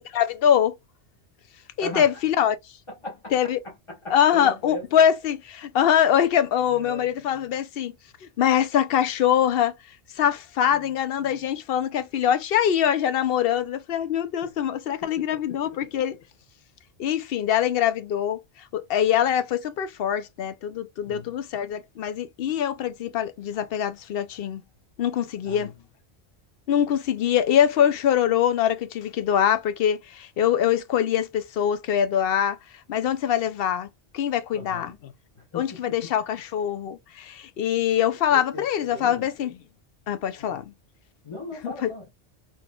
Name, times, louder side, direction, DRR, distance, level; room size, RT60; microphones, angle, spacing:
voice 1, 0.1-0.8 1.8-2.6 3.3-3.6 4.1-7.9 8.4-9.7 10.2-16.2 17.0-18.4 18.7-24.6 25.0-25.7 26.7-32.6 32.9-33.9 34.1-34.9 35.5-39.5 40.1-40.6 41.6-41.9, left 9 dB, 65° left, 0.7 m, -23 dB
voice 2, 1.8-2.2 2.9-4.9 6.7-7.1 10.7-10.9 14.4-14.6 15.0-16.0 21.0-21.4 25.4-25.9 34.5-35.0 35.3-36.0 38.3-39.3 40.4-40.7 41.2-42.1, left 1 dB, 25° left, 1.3 m, -39 dB
3.9 x 3.0 x 2.3 m
omnidirectional pair, 1.2 m